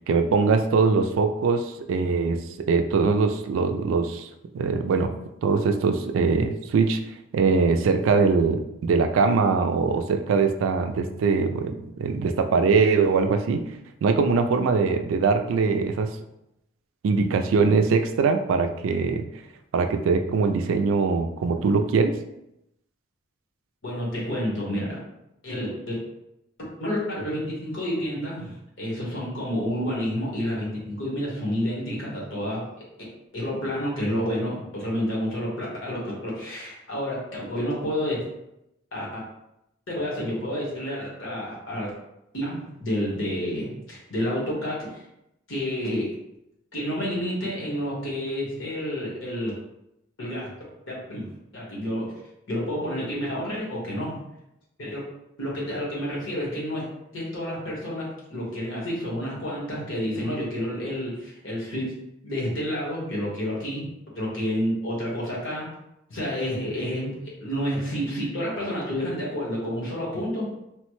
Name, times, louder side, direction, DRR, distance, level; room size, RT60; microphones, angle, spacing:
voice 1, 0.1-4.3 4.5-5.1 5.4-7.0 7.3-13.6 14.0-16.1 17.0-19.3 19.7-22.1, right 4 dB, 80° right, 7 dB, 0.3 m, -22 dB
voice 2, 23.8-25.0 25.4-26.0 26.6-32.7 33.3-38.2 38.9-39.2 39.9-41.9 42.3-44.9 45.5-46.1 46.7-49.5 50.2-50.5 50.9-51.3 51.5-52.1 52.5-54.2 54.8-55.0 55.4-56.9 57.1-61.9 62.2-63.9 64.1-65.7 66.1-67.1 67.4-70.6, equal, 75° left, -5 dB, 1.3 m, -29 dB
3.1 x 2.1 x 3.1 m, 0.85 s
head